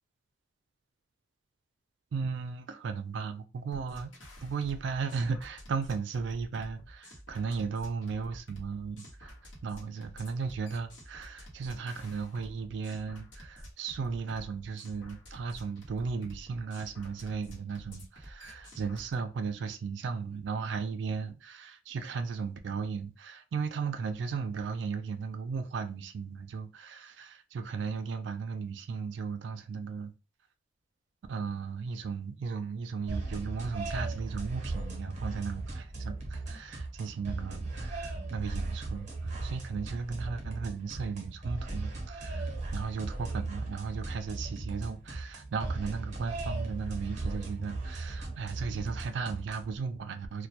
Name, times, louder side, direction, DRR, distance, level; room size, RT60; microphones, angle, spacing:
voice 1, 2.1-4.1 4.4-9.3 9.6-30.1 31.3-50.5, right 5 dB, 65° right, 0.3 m, -36 dB
sound 1, 3.7-19.1, equal, 80° left, 0.9 m, -49 dB
sound 2, 33.1-49.8, right 2 dB, 40° right, 0.7 m, -37 dB
2.2 x 2.1 x 2.7 m
head